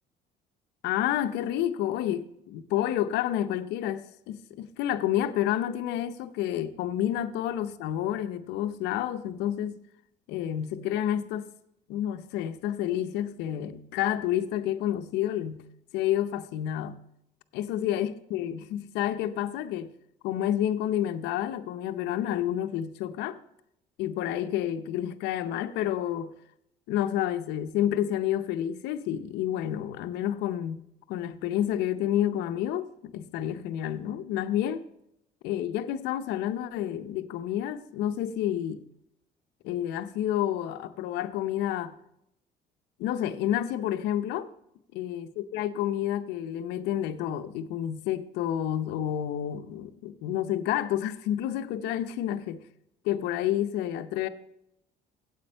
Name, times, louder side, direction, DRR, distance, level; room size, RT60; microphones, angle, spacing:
voice 1, 0.8-9.8 10.3-11.5 11.9-15.6 15.9-17.0 17.5-19.9 20.2-23.4 24.0-26.3 26.9-34.9 35.4-38.8 39.6-42.0 43.0-44.5 44.9-52.6 53.0-54.3, left 11 dB, 90° left, 0.6 m, -29 dB
8.5 x 8.4 x 4.5 m
cardioid pair, 110°, 17 cm